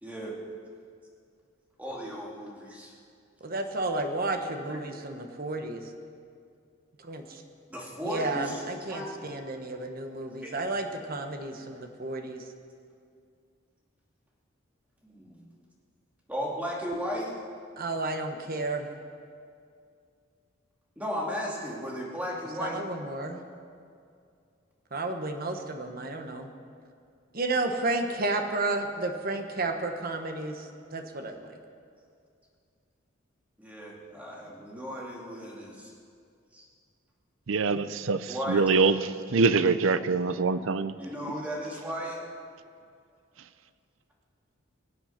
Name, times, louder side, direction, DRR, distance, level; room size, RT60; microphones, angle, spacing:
voice 1, 0.0-0.4 1.8-2.9 4.7-4.8 7.7-8.6 8.9-9.2 10.4-10.6 15.0-15.4 16.3-17.4 21.0-22.8 33.6-35.9 36.5-36.7 38.3-38.6 41.0-42.2, equal, 10° right, -3 dB, 2.5 m, -35 dB
voice 2, 3.4-5.8 7.0-7.4 8.0-12.4 17.8-18.9 22.6-23.4 24.9-26.5 27.3-31.5 37.6-37.8, right 2 dB, 45° right, 5 dB, 1.2 m, -32 dB
voice 3, 37.5-40.9, right 4 dB, 75° right, 13 dB, 0.6 m, -24 dB
23.0 x 7.9 x 5.9 m, 2.3 s
head